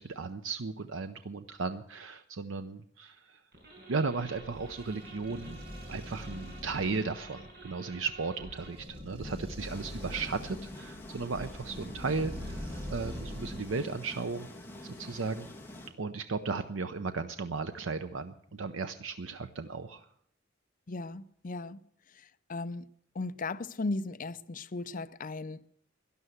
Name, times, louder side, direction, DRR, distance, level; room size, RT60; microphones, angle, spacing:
voice 1, 0.0-3.4 3.9-5.6 5.9-14.5 14.8-15.5 16.0-20.1, right 4 dB, 90° right, 0.7 m, -35 dB
sound 1, 3.5-8.9, right 2 dB, 55° right, 5.6 m, -51 dB
sound 2, 4.2-13.9, left 1 dB, 30° right, 2.4 m, -43 dB
sound 3, 9.6-15.9, left 1 dB, 10° left, 2.0 m, -47 dB
voice 2, 20.9-21.8 22.5-22.9 23.2-25.6, left 3 dB, 45° left, 0.6 m, -36 dB
12.5 x 11.0 x 8.0 m
head